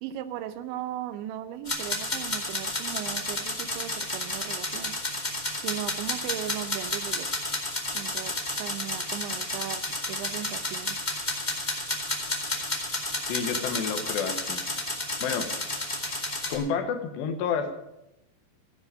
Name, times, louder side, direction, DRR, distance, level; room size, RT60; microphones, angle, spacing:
voice 1, 0.0-5.0 5.6-7.3 7.9-11.0, right 12 dB, 90° right, 12 dB, 3.2 m, -37 dB
sound 1, 1.7-16.5, left 2 dB, 25° left, 1.0 m, -31 dB
voice 2, 13.2-14.6 15.2-15.5 16.5-17.7, left 6 dB, 80° left, 7 dB, 3.3 m, -29 dB
14.5 x 9.4 x 6.8 m, 0.86 s
omnidirectional pair, 5.1 m